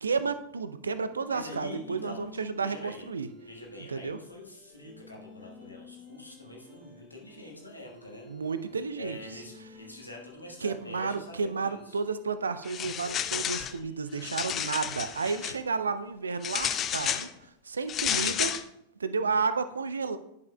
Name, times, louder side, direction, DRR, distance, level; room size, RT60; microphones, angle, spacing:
voice 1, 0.0-3.3 3.9-4.2 8.3-9.4 10.6-17.3 17.6-18.6 19.0-20.2, right 5 dB, 75° right, 12 dB, 0.4 m, -32 dB
sound 1, 1.0-16.1, left 3 dB, ahead, 1.9 m, -53 dB
voice 2, 1.3-2.3 2.6-3.0 3.5-8.3 9.0-12.0, left 1 dB, 85° left, -1 dB, 1.4 m, -45 dB
shower curtain (dif speeds), 12.6-13.8 14.1-15.6 16.4-17.3 17.9-18.6, left 9 dB, 30° left, 0.3 m, -31 dB
10.5 x 5.4 x 2.2 m, 0.80 s
figure-of-eight pair, 90°, 0 cm